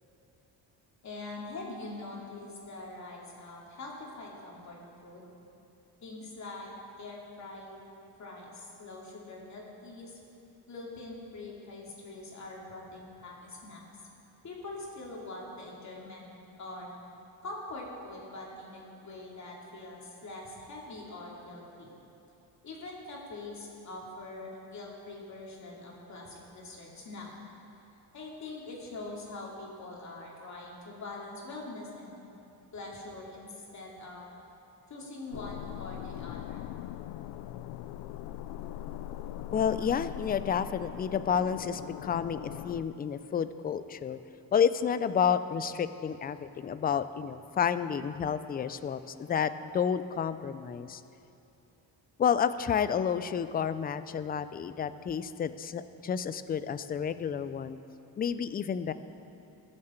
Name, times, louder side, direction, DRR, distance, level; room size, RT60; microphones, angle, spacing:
voice 1, 1.0-5.3 6.0-6.7 7.0-7.9 8.2-10.2 10.7-13.8 14.4-16.3 16.6-16.9 17.4-21.9 22.6-27.3 28.1-32.1 32.7-34.2 34.9-36.6, left 2 dB, 40° left, -3 dB, 2.8 m, -43 dB
sound 1, 35.3-42.8, left 12 dB, 85° left, 0.5 m, -41 dB
voice 2, 39.5-44.2 44.5-51.0 52.2-57.8 58.2-58.9, left 7 dB, 25° left, 13 dB, 0.3 m, -30 dB
21.5 x 7.6 x 4.4 m, 2.9 s
cardioid pair, 130°, 42 cm